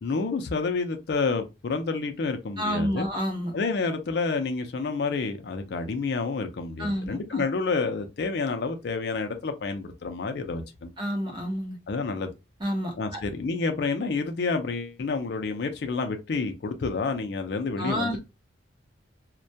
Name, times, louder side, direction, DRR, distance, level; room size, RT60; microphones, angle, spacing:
voice 1, 0.0-3.1 3.5-10.9 11.9-12.3 13.0-18.2, left 4 dB, 55° left, 0.4 m, -29 dB
voice 2, 2.6-3.5 6.8-7.4 11.0-11.8 12.6-13.2 17.8-18.2, equal, 25° right, 0.6 m, -29 dB
2.2 x 2.1 x 2.6 m
head